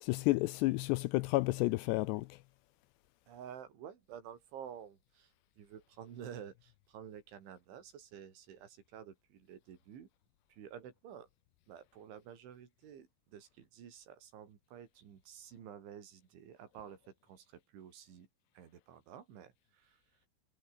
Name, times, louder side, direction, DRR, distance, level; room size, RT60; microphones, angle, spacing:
voice 1, 0.0-2.3, left 21 dB, 85° left, 2.5 m, -31 dB
voice 2, 3.3-10.1 10.5-11.3 11.7-18.3 18.6-20.0, right 8 dB, 85° right, 5.8 m, -51 dB
omnidirectional pair, 5.3 m